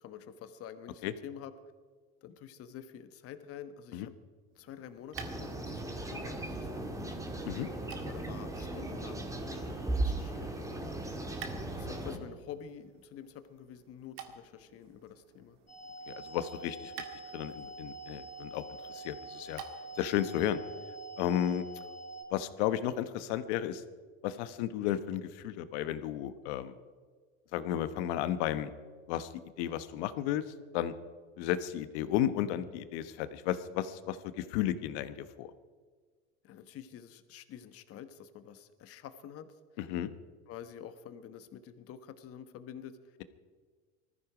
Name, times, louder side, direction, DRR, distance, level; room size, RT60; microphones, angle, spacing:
voice 1, 0.0-1.5 2.2-4.1 4.5-7.2 8.0-10.9 11.7-15.6 21.8-21.9 36.4-39.5 40.5-43.2, left 9 dB, 45° left, 11 dB, 1.3 m, -48 dB
sound 1, 4.5-20.1, right 8 dB, 70° right, 2.1 m, -53 dB
sound 2, 5.1-12.2, right 2 dB, 10° right, 1.7 m, -37 dB
sound 3, 15.7-22.2, right 2 dB, 10° left, 5.4 m, -46 dB
voice 2, 16.1-17.1 17.3-18.6 18.9-19.6 20.0-20.6 21.2-21.6 22.3-23.8 24.2-26.7 27.5-28.7 29.1-29.3 29.6-30.4 30.7-30.9 31.4-35.5 39.8-40.1, left 11 dB, 80° left, 12 dB, 1.2 m, -33 dB
19.5 x 14.0 x 5.0 m, 1.5 s
supercardioid pair, 135°, 34 cm